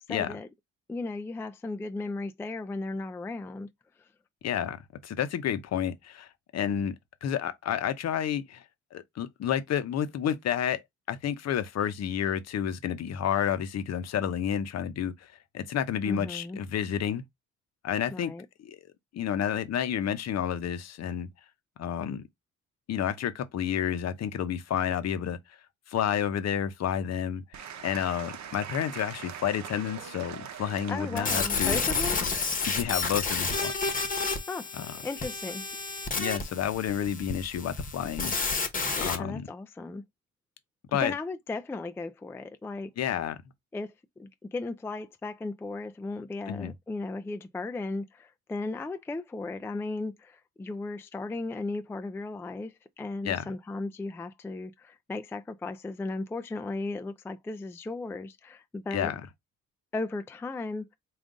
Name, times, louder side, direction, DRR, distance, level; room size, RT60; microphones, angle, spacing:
voice 1, 0.1-0.5 0.9-3.7 16.0-16.6 18.1-18.5 30.9-32.2 34.5-34.7 35.0-35.6 39.2-40.0 41.0-42.9 43.7-43.9 44.2-59.1 59.9-60.9, left 3 dB, 10° left, 0.3 m, -36 dB
voice 2, 4.4-6.9 7.2-8.6 8.9-10.8 11.1-17.2 17.8-18.3 18.6-18.8 19.1-21.3 21.8-22.2 22.9-25.4 25.9-31.8 32.7-33.7 34.7-34.9 36.2-38.3 39.0-39.5 40.9-41.1 43.0-43.4 46.5-46.7 53.2-53.4 58.9-59.2, left 9 dB, 60° left, 0.7 m, -30 dB
Applause / Crowd, 27.5-33.8, right 8 dB, 65° right, 0.8 m, -43 dB
sound 1, 31.2-39.2, left 4 dB, 30° left, 1.1 m, -30 dB
3.8 x 2.4 x 3.6 m
cardioid pair, 90°, 30 cm